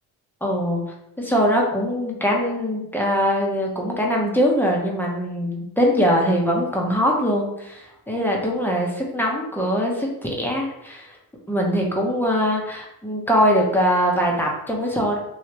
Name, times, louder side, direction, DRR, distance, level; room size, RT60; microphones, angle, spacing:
voice 1, 0.4-0.8 1.2-11.2 11.5-15.2, equal, 5° left, -2 dB, 0.8 m, -22 dB
3.3 x 2.8 x 2.9 m, 0.80 s
cardioid pair, 85°, 39 cm